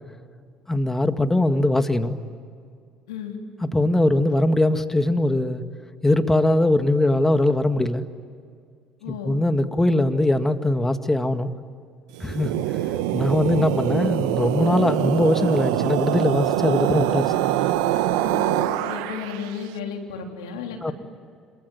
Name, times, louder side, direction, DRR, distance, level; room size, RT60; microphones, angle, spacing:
voice 1, 0.7-2.2 3.6-5.6 6.0-8.0 9.2-11.5 12.2-12.5 13.1-17.3 20.8-20.9, left 1 dB, 15° left, 9 dB, 2.0 m, -21 dB
voice 2, 3.1-3.4 9.0-9.3 18.2-20.9, left 6 dB, 90° left, 3 dB, 3.5 m, -34 dB
sound 1, 12.1-19.5, right 13 dB, 80° right, 1.1 m, -24 dB
27.0 x 23.5 x 9.4 m, 2.2 s
hypercardioid pair, 65°, 3 cm